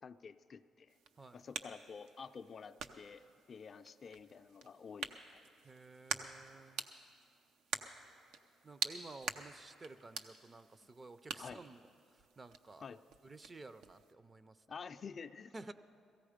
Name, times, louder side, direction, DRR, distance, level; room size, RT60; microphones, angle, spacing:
voice 1, 0.0-1.0 1.3-3.2 3.5-5.4 10.8-10.9 11.4-11.6 12.8-13.0 14.7-15.5, left 6 dB, 45° left, 9 dB, 0.4 m, -50 dB
sound 1, 0.9-14.1, right 6 dB, 85° right, 0.6 m, -47 dB
voice 2, 5.6-6.9 8.6-11.8 12.4-12.9 13.2-14.6 15.5-15.7, right 3 dB, 30° right, 13 dB, 0.5 m, -53 dB
16.5 x 15.0 x 5.0 m, 2.5 s
cardioid pair, 90°, 0 cm